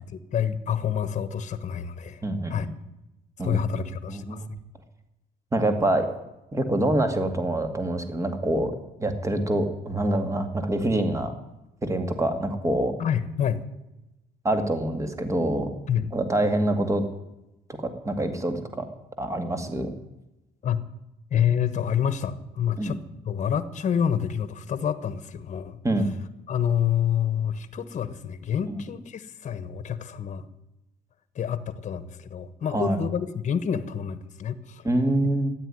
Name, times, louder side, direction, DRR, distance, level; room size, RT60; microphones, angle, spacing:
voice 1, 0.1-2.2 2.5-2.7 3.4-4.6 13.0-13.6 15.9-16.1 20.6-20.8 21.3-23.0 23.2-25.8 26.5-30.5 31.3-34.9, left 8 dB, 45° left, 13 dB, 1.3 m, -28 dB
voice 2, 2.2-2.7 3.4-4.5 5.5-6.1 6.5-8.7 9.0-11.3 11.8-12.9 14.4-15.7 16.1-17.0 17.7-18.9 19.2-19.9 22.8-23.0 25.8-26.1 28.7-28.8 32.7-33.0 34.8-35.5, right 1 dB, 20° right, 7 dB, 2.3 m, -25 dB
13.0 x 10.0 x 10.0 m, 0.96 s
cardioid pair, 110°, 17 cm